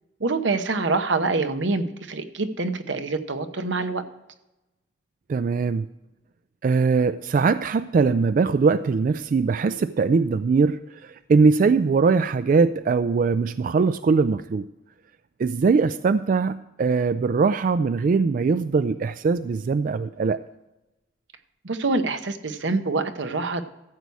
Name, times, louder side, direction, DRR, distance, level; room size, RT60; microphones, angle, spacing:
voice 1, 0.2-4.0 21.6-23.6, right 3 dB, 85° right, 8 dB, 0.9 m, -25 dB
voice 2, 5.3-5.9 6.6-14.7 15.4-20.4, right 4 dB, 45° right, 13 dB, 0.3 m, -21 dB
14.0 x 4.7 x 8.2 m, 1.0 s
head